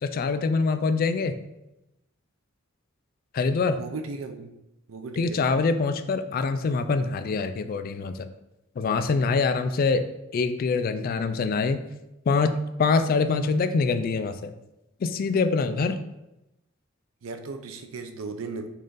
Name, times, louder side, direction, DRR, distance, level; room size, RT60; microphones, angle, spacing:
voice 1, 0.0-1.3 3.3-3.8 5.2-8.3 8.8-10.0 10.3-11.8 12.3-14.5 15.0-16.0, left 4 dB, 45° left, 10 dB, 0.3 m, -24 dB
voice 2, 3.7-4.5 4.9-5.4 17.2-18.7, right 3 dB, 75° right, 7 dB, 0.5 m, -36 dB
5.4 x 2.6 x 3.8 m, 0.92 s
head